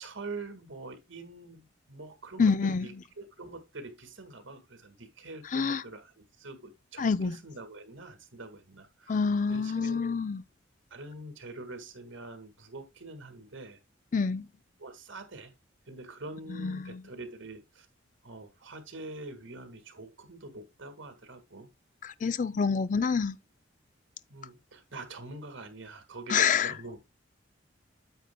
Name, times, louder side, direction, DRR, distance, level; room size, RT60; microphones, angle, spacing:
voice 1, 0.0-9.2 9.5-10.0 10.9-13.8 14.8-15.5 15.9-17.9 18.2-21.7 24.3-27.0, right 2 dB, 75° right, 1.8 m, -45 dB
voice 2, 2.4-2.9 5.5-5.8 7.0-7.4 9.1-10.4 14.1-14.5 16.6-17.0 22.0-23.4 26.3-26.7, left 5 dB, 40° left, 0.4 m, -27 dB
9.2 x 8.0 x 2.2 m
head